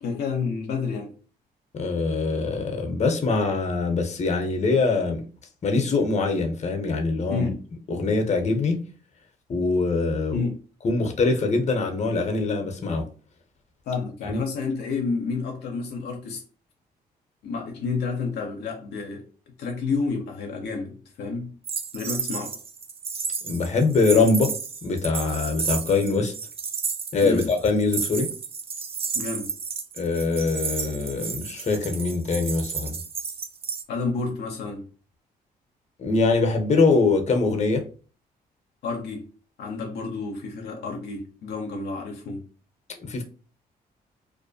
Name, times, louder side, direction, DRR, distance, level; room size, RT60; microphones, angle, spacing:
voice 1, 0.0-1.1 7.3-7.6 10.3-10.6 13.9-16.4 17.4-19.3 19.6-21.6 21.9-22.6 27.2-27.5 29.1-29.5 33.9-34.9 38.8-39.3 39.6-42.5, left 4 dB, 75° left, 0.6 m, -30 dB
voice 2, 1.7-5.2 5.6-7.5 7.9-8.8 9.5-10.4 10.8-13.0 14.2-14.4 23.4-24.5 24.8-26.3 27.1-28.3 30.0-33.0 36.0-37.8 43.0-43.2, left 3 dB, 40° left, 0.7 m, -23 dB
sound 1, 21.6-33.8, right 5 dB, 35° right, 0.4 m, -32 dB
2.5 x 2.1 x 2.6 m
supercardioid pair, 60°, 17 cm